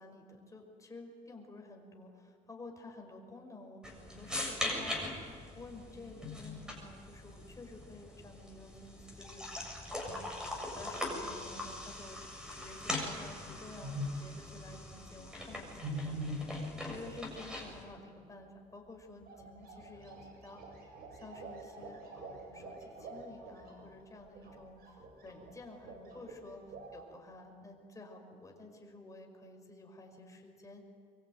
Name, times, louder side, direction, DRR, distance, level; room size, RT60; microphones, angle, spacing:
voice 1, 0.0-12.2 12.5-20.6 21.1-26.6 26.9-30.8, left 2 dB, 20° left, 2 dB, 5.8 m, -52 dB
sound 1, 3.8-17.8, left 1 dB, 5° right, 7.0 m, -41 dB
sound 2, 13.8-14.3 15.8-16.6 18.9-19.0 19.2-26.4 26.7-27.1, equal, 65° right, 7.7 m, -44 dB
23.5 x 23.5 x 9.2 m, 2.2 s
cardioid pair, 110°, 17 cm